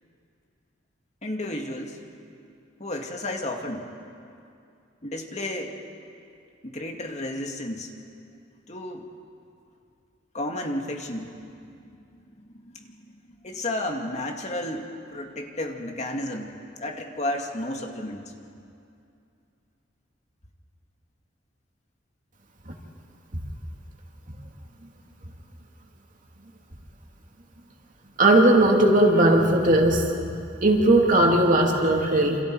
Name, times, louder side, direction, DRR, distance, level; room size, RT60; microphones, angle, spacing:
voice 1, 1.2-2.0 2.8-3.9 5.0-5.8 6.6-7.9 8.7-9.1 10.3-12.0 12.3-14.9 15.1-18.2, left 1 dB, 40° left, 2 dB, 2.2 m, -32 dB
voice 2, 28.2-30.1 30.6-32.4, right 1 dB, 45° right, 1 dB, 2.7 m, -18 dB
28.5 x 27.5 x 4.8 m, 2.5 s
head